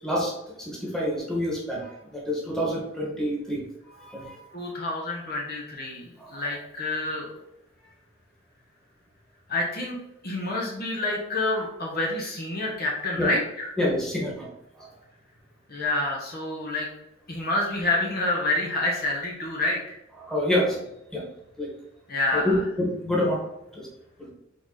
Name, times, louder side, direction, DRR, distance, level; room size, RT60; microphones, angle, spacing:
voice 1, 0.0-3.6 3.9-4.4 6.2-6.4 13.2-13.3 13.8-14.5 14.8-14.9 20.2-20.8 21.1-21.2 21.6-21.7 22.3-23.4 23.7-23.9 24.2-24.3, left 1 dB, 5° left, -4 dB, 1.8 m, -27 dB
voice 2, 4.5-7.4 9.5-10.0 10.2-13.7 15.7-16.9 17.3-20.0 22.1-22.6, left 2 dB, 50° left, -2 dB, 1.4 m, -28 dB
5.8 x 4.1 x 4.2 m, 0.84 s
head